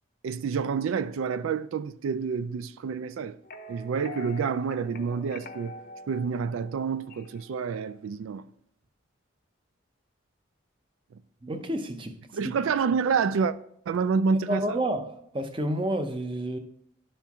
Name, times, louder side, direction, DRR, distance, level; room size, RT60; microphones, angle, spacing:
voice 1, 0.2-3.4 3.7-5.8 6.1-8.5 12.3-13.5 13.9-14.8, right 5 dB, 90° right, 0.3 m, -28 dB
sound 1, 3.4-7.5, left 3 dB, 45° left, 0.6 m, -45 dB
voice 2, 11.4-12.2 12.4-12.5 14.5-16.6, right 1 dB, 25° right, 0.6 m, -30 dB
11.5 x 4.4 x 3.5 m
head